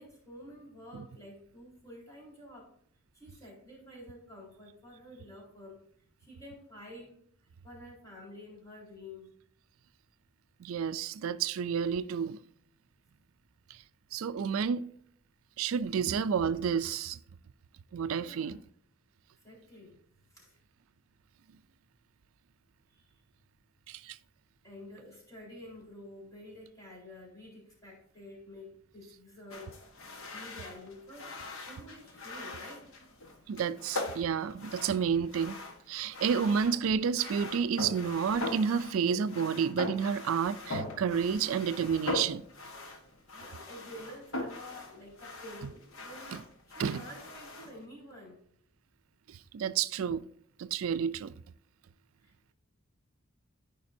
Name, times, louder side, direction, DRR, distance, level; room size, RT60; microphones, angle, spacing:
voice 1, 0.0-2.7 3.1-5.8 6.2-7.1 7.6-9.4 18.2-18.5 19.4-20.0 20.3-20.6 22.9-23.0 24.6-29.9 30.3-31.4 31.7-33.0 43.3-46.5 46.8-48.4 52.2-52.5, left 1 dB, 15° left, 3.9 m, -49 dB
voice 2, 10.6-12.4 13.7-13.8 14.1-14.8 15.6-17.2 17.9-18.6 23.9-24.2 33.5-35.6 35.9-42.4 46.8-47.0 49.3-50.2 50.6-51.3, right 7 dB, 75° right, 0.4 m, -30 dB
sound 1, 29.5-47.8, left 2 dB, 70° left, 1.2 m, -41 dB
13.5 x 5.2 x 2.7 m
head